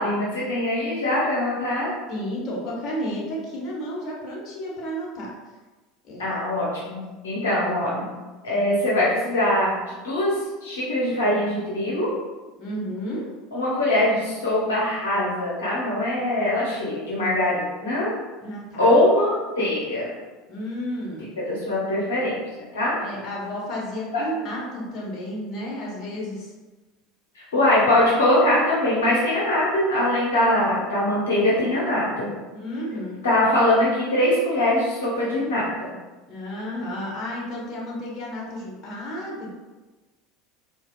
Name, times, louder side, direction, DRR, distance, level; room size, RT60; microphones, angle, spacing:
voice 1, 0.0-1.9 6.2-8.1 8.4-9.7 10.0-10.3 10.6-12.1 13.5-18.1 18.8-20.1 21.2-22.3 22.7-22.9 24.1-24.2 27.3-32.3 33.2-35.9, left 1 dB, 75° left, -6 dB, 0.8 m, -22 dB
voice 2, 2.1-5.3 6.0-6.3 12.6-13.3 18.4-19.0 20.5-21.3 23.0-26.5 32.5-33.2 36.3-39.5, equal, 40° left, -4 dB, 1.1 m, -32 dB
4.1 x 2.3 x 2.2 m, 1.2 s
hypercardioid pair, 80°, 0 cm